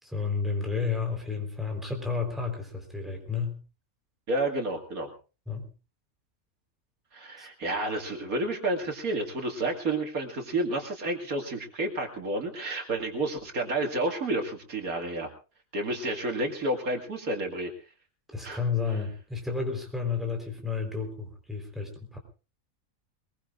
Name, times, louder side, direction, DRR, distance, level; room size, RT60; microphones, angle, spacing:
voice 1, 0.0-3.6 5.5-5.7 7.4-7.5 18.3-22.2, left 5 dB, ahead, 2 dB, 4.0 m, -31 dB
voice 2, 4.3-5.1 7.1-15.3 15.7-17.7 18.4-18.6, right 2 dB, 85° right, 3 dB, 2.7 m, -30 dB
22.0 x 21.5 x 2.5 m, 0.33 s
omnidirectional pair, 1.5 m